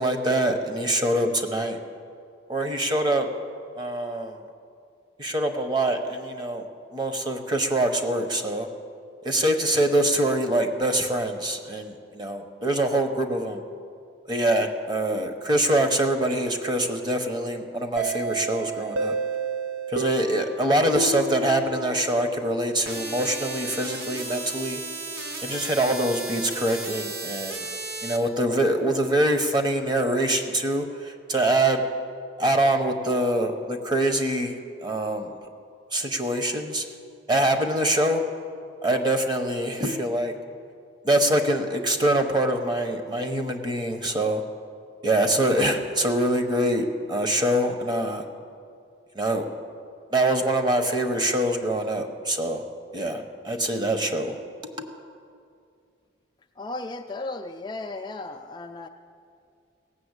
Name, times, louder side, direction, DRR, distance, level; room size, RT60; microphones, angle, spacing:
voice 1, 0.0-1.8 2.5-3.3 3.7-4.5 5.2-6.7 6.9-8.7 9.2-13.6 14.3-19.2 19.9-24.8 25.4-27.7 28.0-31.8 32.4-35.4 35.9-36.9 37.3-38.3 38.8-40.3 41.0-44.4 45.0-48.2 49.1-49.5 50.1-52.6 52.9-54.4 54.8-54.9, right 1 dB, 25° right, 5 dB, 0.8 m, -24 dB
sound 1, 18.0-22.6, right 3 dB, 75° right, 0.7 m, -31 dB
sound 2, 22.9-28.2, right 3 dB, 55° right, 1.3 m, -35 dB
voice 2, 56.6-58.9, left 2 dB, 20° left, 4 dB, 0.3 m, -35 dB
17.0 x 6.8 x 8.1 m, 2.3 s
head